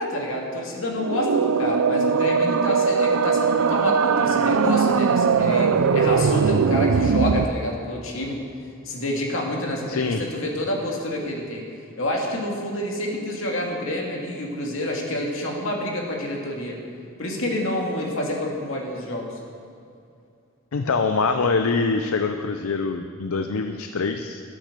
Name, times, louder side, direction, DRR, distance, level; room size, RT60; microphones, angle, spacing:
voice 1, 0.0-8.4 8.8-11.6 12.0-16.8 17.2-19.4, left 1 dB, 70° left, -1 dB, 2.2 m, -28 dB
sound 1, 1.0-7.4, right 5 dB, 80° right, 0.4 m, -20 dB
voice 2, 9.9-10.2 20.7-24.4, left 4 dB, 90° left, 7 dB, 0.5 m, -24 dB
12.0 x 8.6 x 6.7 m, 2.5 s
head